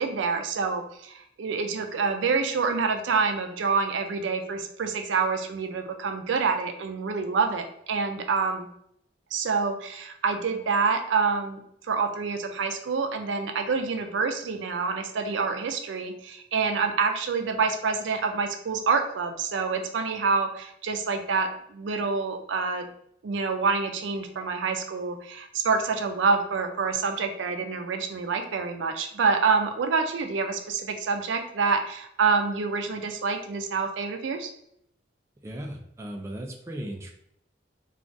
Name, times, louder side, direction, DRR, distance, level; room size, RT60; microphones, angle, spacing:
voice 1, 0.0-8.7 9.3-11.6 11.9-22.9 23.2-34.5, right 5 dB, 90° right, 6 dB, 0.4 m, -27 dB
voice 2, 35.4-37.1, right 1 dB, 15° right, 1 dB, 0.4 m, -36 dB
2.4 x 2.3 x 3.7 m, 0.73 s
head